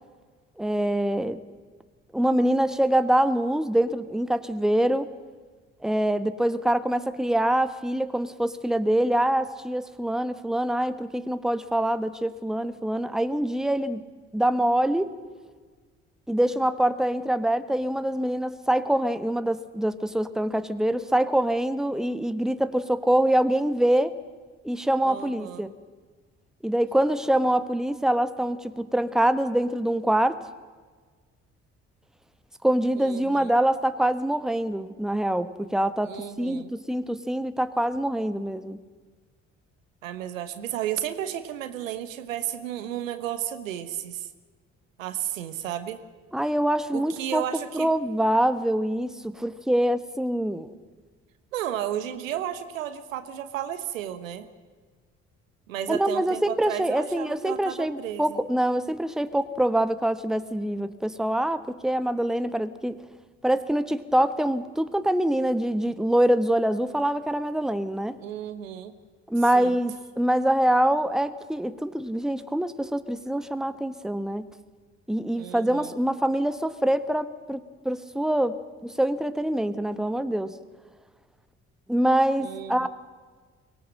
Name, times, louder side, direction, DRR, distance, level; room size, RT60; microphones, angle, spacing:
voice 1, 0.6-1.4 2.1-5.1 5.8-14.0 14.3-15.1 16.3-24.1 24.6-25.7 26.6-30.4 32.6-38.8 46.3-47.4 47.7-50.7 55.9-63.0 63.4-68.2 69.3-74.4 75.1-80.6 81.9-82.9, right 1 dB, ahead, 12 dB, 1.3 m, -25 dB
voice 2, 25.0-25.7 33.0-33.6 36.0-36.7 40.0-44.3 45.0-46.0 46.9-47.9 51.5-54.5 55.7-58.4 68.2-68.9 69.5-69.8 75.4-76.0 82.4-82.9, right 11 dB, 80° right, 11 dB, 1.2 m, -33 dB
24.0 x 17.5 x 7.6 m, 1.4 s
figure-of-eight pair, 45°, 39 cm